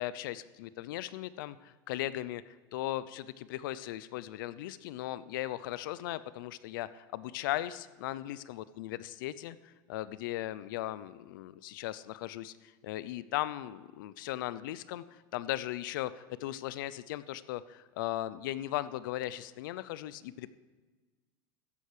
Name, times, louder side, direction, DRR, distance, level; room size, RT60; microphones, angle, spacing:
voice 1, 0.0-20.5, left 14 dB, 80° left, 16 dB, 0.5 m, -38 dB
13.5 x 10.0 x 4.9 m, 1.3 s
supercardioid pair, 175°, 11 cm